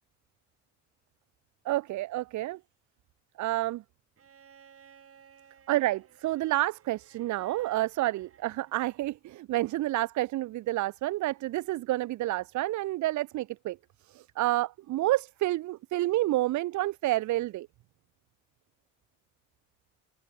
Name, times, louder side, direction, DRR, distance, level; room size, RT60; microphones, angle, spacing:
voice 1, 1.7-2.6 3.4-3.8 5.7-13.8 14.1-17.7, right 16 dB, 70° right, 0.6 m, -29 dB
Bowed string instrument, 4.2-9.2 10.7-10.8, right 7 dB, 50° right, 3.6 m, -58 dB
cardioid pair, 90°, 30 cm